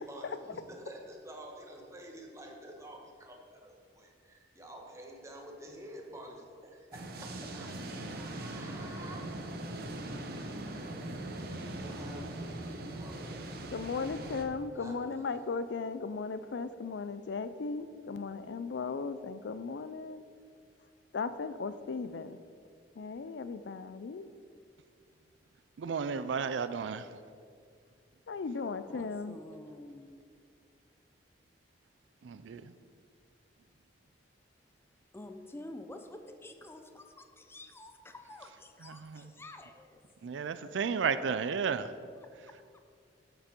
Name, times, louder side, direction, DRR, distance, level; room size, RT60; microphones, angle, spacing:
voice 1, 0.0-7.3 7.5-7.7 8.1-9.2 9.7-13.4 14.8-15.2, right 1 dB, 15° right, 1.3 m, -49 dB
sound 1, 6.9-14.4, right 1 dB, 60° right, 1.0 m, -40 dB
voice 2, 13.7-20.2 21.1-22.4 23.0-24.3 28.3-29.4, left 4 dB, 75° left, 0.4 m, -37 dB
voice 3, 25.8-27.2 32.2-32.7 38.8-39.3 40.2-41.9, right 6 dB, 90° right, 0.4 m, -33 dB
voice 4, 28.9-30.1 35.1-40.0 42.2-42.8, left 1 dB, 15° left, 0.6 m, -49 dB
11.5 x 6.9 x 4.4 m
head